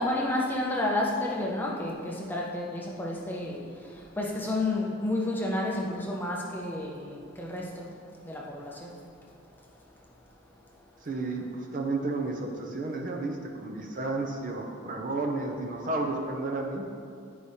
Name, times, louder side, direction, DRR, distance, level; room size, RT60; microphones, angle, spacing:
voice 1, 0.0-3.6 4.2-7.1 7.4-7.9 8.2-8.7, left 1 dB, 10° left, -2 dB, 0.6 m, -30 dB
voice 2, 11.0-16.8, right 2 dB, 40° right, 2 dB, 0.5 m, -32 dB
9.3 x 4.8 x 2.7 m, 2.3 s
head